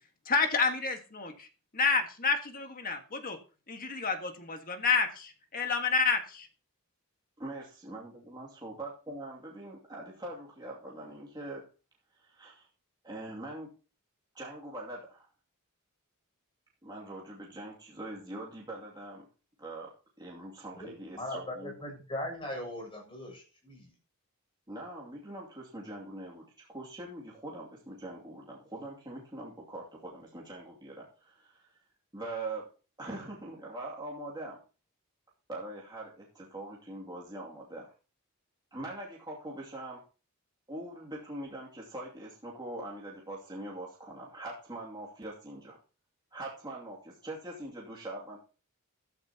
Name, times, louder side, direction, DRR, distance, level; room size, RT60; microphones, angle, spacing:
voice 1, 0.2-1.5 1.7-3.4 3.7-6.5, left 4 dB, 40° left, 6 dB, 1.6 m, -29 dB
voice 2, 7.4-11.6 12.2-12.7 13.0-13.7 14.3-15.3 16.8-19.2 19.6-19.9 20.2-21.7 24.7-31.7 32.1-32.7 33.0-34.6 35.5-37.9 38.7-40.0 40.7-45.8 46.3-48.4, right 2 dB, 20° right, -4 dB, 2.5 m, -42 dB
voice 3, 20.8-23.9, left 1 dB, 25° left, 2 dB, 7.0 m, -39 dB
14.0 x 13.0 x 2.9 m, 0.35 s
head